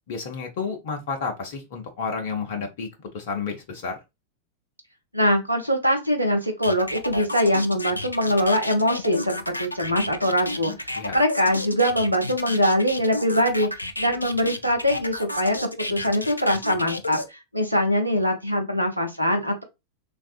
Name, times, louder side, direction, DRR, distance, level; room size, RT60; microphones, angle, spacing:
voice 1, 0.1-2.9 3.1-4.0 10.9-11.2, left 5 dB, 50° left, 0.6 m, -31 dB
voice 2, 5.1-15.6 15.9-19.6, equal, 90° right, 0.7 m, -23 dB
sound 1, 6.6-17.3, left 1 dB, 85° left, 0.3 m, -32 dB
3.4 x 2.5 x 2.3 m
figure-of-eight pair, 90°, 0 cm